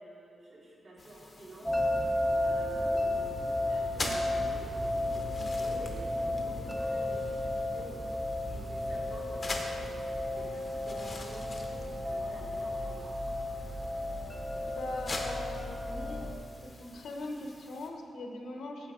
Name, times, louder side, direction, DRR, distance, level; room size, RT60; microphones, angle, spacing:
voice 1, 0.0-1.7 2.3-3.3 3.7-13.2, right 1 dB, 50° right, -6 dB, 2.3 m, -49 dB
sound 1, 1.0-17.9, left 2 dB, 25° left, 0.8 m, -45 dB
sound 2, 1.6-16.3, left 1 dB, 5° right, 1.2 m, -33 dB
voice 2, 14.7-16.2 16.6-18.9, left 2 dB, 80° left, 2 dB, 1.0 m, -41 dB
8.6 x 7.8 x 4.9 m, 2.5 s
wide cardioid pair, 175°, 0 cm